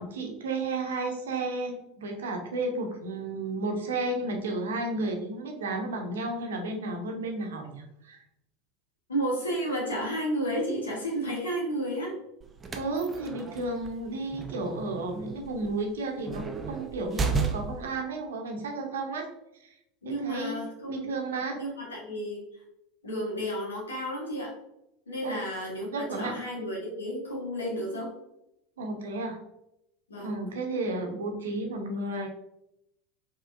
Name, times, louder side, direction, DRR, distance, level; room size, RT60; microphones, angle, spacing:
voice 1, 0.0-8.2 12.7-19.3 19.6-19.7 20.0-20.6 20.9-21.6 25.2-25.4 25.9-26.4 28.8-29.4 30.2-32.3, right 2 dB, 65° right, 3 dB, 0.7 m, -32 dB
voice 2, 9.1-12.2 20.0-21.1 21.5-22.5 23.0-24.5 25.1-28.1 30.1-30.4, equal, 75° left, -3 dB, 1.4 m, -32 dB
sound 1, 12.4-18.0, right 4 dB, 20° right, 0.5 m, -34 dB
4.8 x 2.9 x 2.5 m, 0.84 s
figure-of-eight pair, 80°, 0 cm